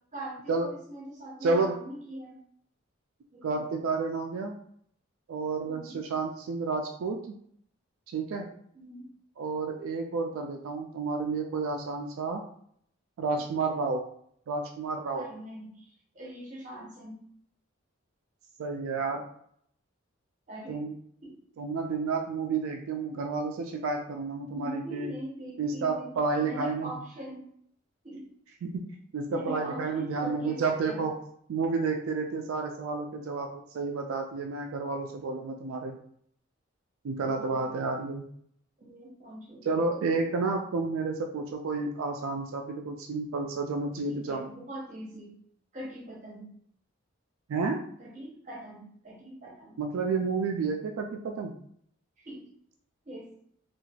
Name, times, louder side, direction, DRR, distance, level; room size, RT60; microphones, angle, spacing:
voice 1, 0.1-2.3 3.3-3.7 5.7-6.0 8.7-9.1 15.1-17.2 20.5-20.8 21.2-21.4 24.5-26.1 26.4-27.5 28.0-28.3 29.3-31.1 37.2-37.8 38.8-40.2 44.1-45.3 45.7-46.5 48.0-49.8 52.2-52.4 53.0-53.3, right 1 dB, 35° right, -2 dB, 0.8 m, -42 dB
voice 2, 1.4-1.7 3.4-4.5 5.3-7.3 8.1-8.5 9.4-12.4 13.2-14.0 14.5-15.3 18.6-19.2 20.7-20.9 21.6-25.1 25.6-26.9 28.6-31.2 31.5-36.0 37.0-38.3 39.6-44.5 47.5-47.8 49.8-51.5, right 4 dB, 75° right, 3 dB, 0.3 m, -30 dB
3.1 x 2.4 x 2.4 m, 0.66 s
head